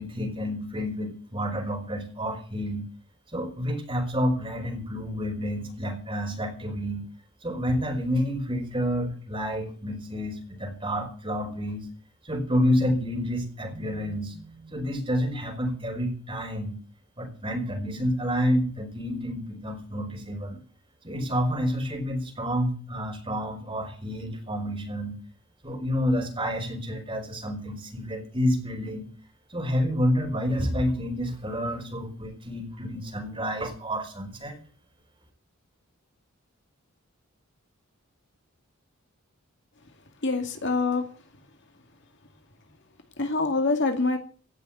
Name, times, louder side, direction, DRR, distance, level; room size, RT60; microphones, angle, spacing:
voice 1, 0.0-2.9 3.3-7.0 7.4-11.9 12.2-16.8 17.2-20.6 21.0-25.2 25.6-29.1 29.5-34.5, equal, 25° right, 3 dB, 4.9 m, -29 dB
voice 2, 40.2-41.0 43.2-44.2, left 3 dB, 55° left, 5 dB, 2.3 m, -25 dB
17.0 x 7.1 x 9.1 m, 0.41 s
head